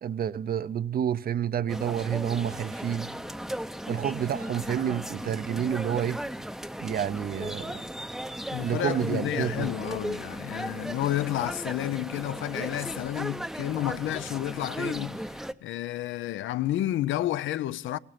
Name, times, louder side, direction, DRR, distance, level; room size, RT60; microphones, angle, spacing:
voice 1, 0.0-3.1 3.9-6.2 6.8-7.8 8.6-9.7, right 9 dB, 50° right, 0.6 m, -29 dB
sound 1, 1.7-15.5, equal, ahead, 0.6 m, -36 dB
voice 2, 8.5-18.0, left 14 dB, 75° left, 0.5 m, -31 dB
17.5 x 12.5 x 5.8 m
cardioid pair, 90°, 20 cm